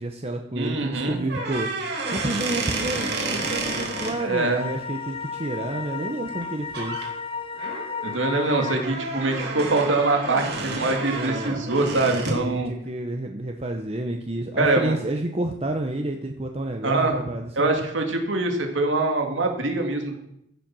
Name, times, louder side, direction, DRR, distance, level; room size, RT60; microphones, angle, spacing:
voice 1, 0.0-1.7 2.1-7.1 11.1-11.7 12.4-17.7, right 1 dB, 30° right, 4 dB, 0.8 m, -30 dB
voice 2, 0.6-1.2 4.2-4.6 8.0-12.7 14.6-14.9 16.8-17.2 17.6-20.2, right 2 dB, 80° right, 3 dB, 2.4 m, -24 dB
sound 1, 1.2-4.1 6.3-6.4 6.7-7.1 7.6-12.5, right 2 dB, 60° right, 2.6 m, -30 dB
sound 2, 3.3-8.8, left 5 dB, 30° left, 0.7 m, -34 dB
14.5 x 7.6 x 6.1 m, 0.78 s
head